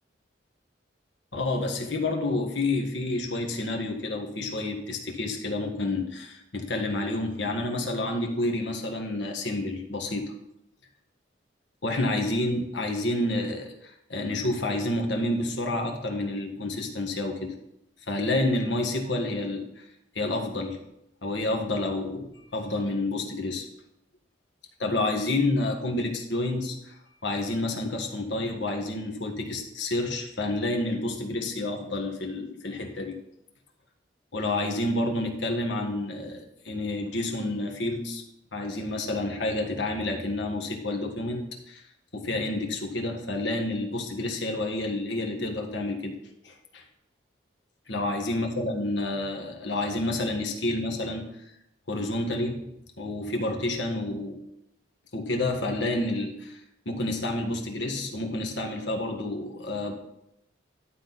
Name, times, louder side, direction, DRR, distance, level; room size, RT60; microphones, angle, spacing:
voice 1, 1.3-10.3 11.8-17.6 18.1-19.8 20.1-20.8 21.2-23.6 24.8-27.0 27.2-33.2 34.3-38.2 38.5-41.8 42.1-46.2 46.4-46.8 47.9-51.3 51.9-52.7 53.0-54.4 55.1-56.6 56.8-59.9, left 2 dB, 75° left, 3 dB, 1.5 m, -29 dB
11.5 x 4.0 x 5.9 m, 0.81 s
head